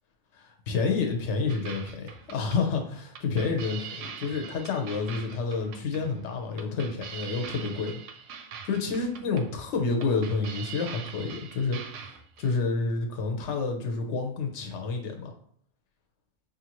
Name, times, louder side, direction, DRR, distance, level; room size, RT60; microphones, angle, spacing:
voice 1, 0.3-8.0 8.6-15.3, left 4 dB, 70° left, 3 dB, 1.0 m, -29 dB
sound 1, 1.5-12.6, right 6 dB, 80° right, 0.9 m, -43 dB
5.1 x 2.5 x 2.9 m, 0.63 s
omnidirectional pair, 1.3 m